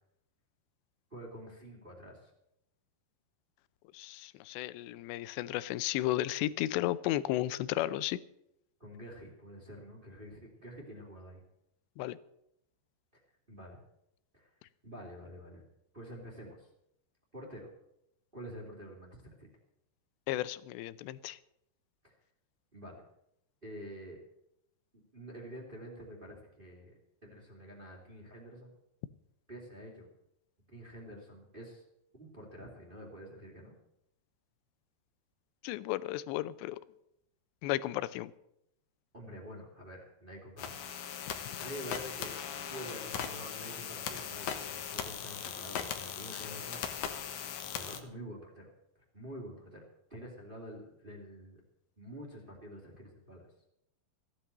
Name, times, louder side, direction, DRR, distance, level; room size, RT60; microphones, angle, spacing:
voice 1, 1.1-2.3 8.8-11.4 13.1-13.2 13.5-13.8 14.3-15.6 15.9-16.7 17.3-17.7 18.3-19.5 22.0-22.1 22.7-23.0 23.6-24.2 24.9-26.9 27.2-28.7 29.5-30.1 30.7-31.8 32.1-33.7 39.1-41.0 41.5-42.4 42.7-47.3 47.7-48.7 48.9-51.6 52.0-53.5, equal, 15° right, 2.2 m, -48 dB
voice 2, 3.9-8.2 12.0-12.2 20.3-21.4 35.6-36.8 37.6-38.3, left 15 dB, 85° left, 2.9 m, -34 dB
sound 1, 40.6-48.0, left 8 dB, 65° left, 2.1 m, -39 dB
15.0 x 10.0 x 7.4 m
omnidirectional pair, 5.0 m